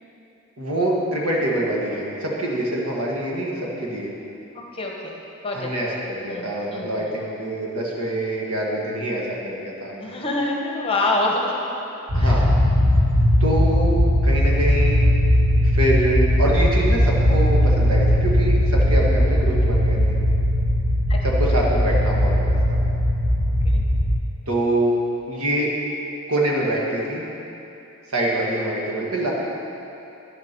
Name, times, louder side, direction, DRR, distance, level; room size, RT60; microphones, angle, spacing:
voice 1, 0.6-4.1 5.5-10.2 12.1-12.5 13.4-15.0 15.6-20.2 21.2-22.6 24.5-24.9 25.3-25.7 26.3-27.2 28.1-29.3, right 1 dB, 80° right, -3 dB, 1.8 m, -25 dB
voice 2, 4.5-5.7 6.3-7.1 10.0-11.6 12.1-12.5 21.1-21.2 23.7-23.9, left 2 dB, 25° left, -1 dB, 1.1 m, -26 dB
sound 1, 12.1-24.2, equal, 35° right, 1.6 m, -18 dB
10.5 x 6.7 x 6.0 m, 2.9 s
head